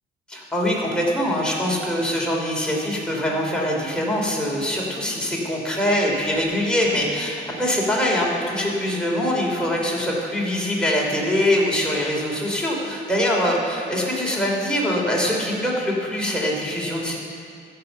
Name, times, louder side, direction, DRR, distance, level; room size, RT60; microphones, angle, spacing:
voice 1, 0.3-17.2, left 1 dB, 5° left, -3 dB, 2.9 m, -23 dB
15.0 x 5.7 x 6.9 m, 2.3 s
cardioid pair, 90°, 20 cm